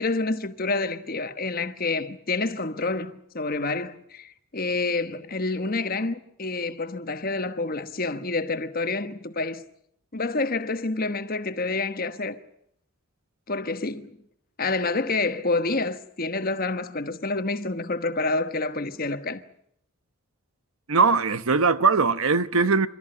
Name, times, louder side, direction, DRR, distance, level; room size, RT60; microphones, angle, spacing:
voice 1, 0.0-9.6 10.1-12.4 13.5-14.2 14.6-19.4, left 3 dB, 40° left, 1.2 m, -28 dB
voice 2, 20.9-22.9, right 4 dB, 70° right, 1.0 m, -20 dB
28.0 x 13.5 x 10.0 m
head